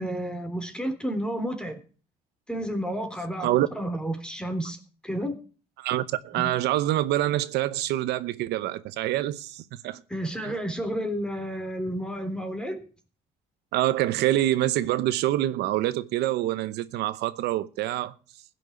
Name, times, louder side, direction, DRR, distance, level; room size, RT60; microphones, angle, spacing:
voice 1, 0.0-1.8 2.5-4.8 5.0-5.3 6.4-6.5 10.1-12.8, equal, 5° left, 3.3 m, -31 dB
voice 2, 5.8-10.0 10.4-10.6 13.7-18.1, right 14 dB, 85° right, 0.9 m, -26 dB
15.5 x 6.3 x 9.4 m
cardioid pair, 110°, 17 cm